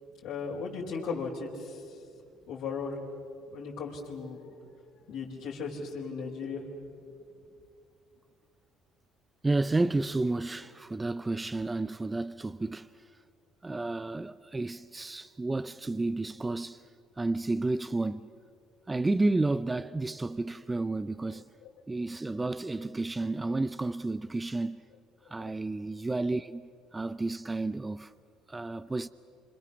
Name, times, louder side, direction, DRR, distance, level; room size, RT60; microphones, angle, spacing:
voice 1, 0.2-2.0 2.5-3.0 3.5-4.4 5.1-6.6 21.6-21.7 25.5-25.6, left 5 dB, 70° left, 4.6 m, -36 dB
voice 2, 9.4-13.0 13.6-16.8 17.2-18.3 18.9-21.4 21.9-24.8 25.3-28.1 28.5-29.1, right 2 dB, 15° right, 0.6 m, -31 dB
27.0 x 27.0 x 7.0 m
supercardioid pair, 80°, 0 cm